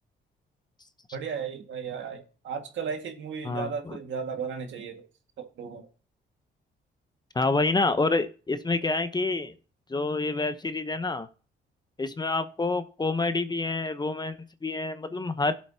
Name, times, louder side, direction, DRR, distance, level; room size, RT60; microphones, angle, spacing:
voice 1, 1.1-5.1 5.4-5.9, right 6 dB, 70° right, 1.9 m, -35 dB
voice 2, 3.4-4.0 7.3-9.5 9.9-11.3 12.0-14.4 14.6-15.5, left 3 dB, 20° left, 0.9 m, -27 dB
16.0 x 7.6 x 2.9 m
cardioid pair, 90°, 20 cm